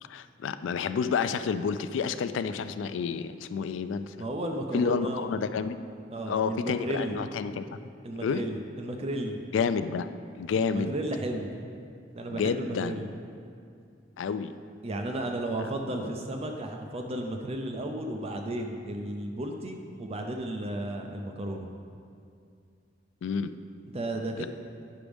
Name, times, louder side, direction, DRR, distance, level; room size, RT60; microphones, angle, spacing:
voice 1, 0.0-4.2 4.7-5.8 6.3-7.6 8.2-8.4 9.5-10.1 10.4-10.9 12.3-13.0 14.2-14.5 23.2-23.5 24.4-24.5, left 6 dB, 90° left, 12 dB, 0.3 m, -29 dB
voice 2, 4.2-5.3 6.1-7.2 8.0-9.4 10.6-11.5 12.1-13.1 14.8-21.7 23.9-24.5, right 1 dB, 35° right, 3 dB, 0.5 m, -33 dB
9.5 x 6.1 x 3.4 m, 2.4 s
head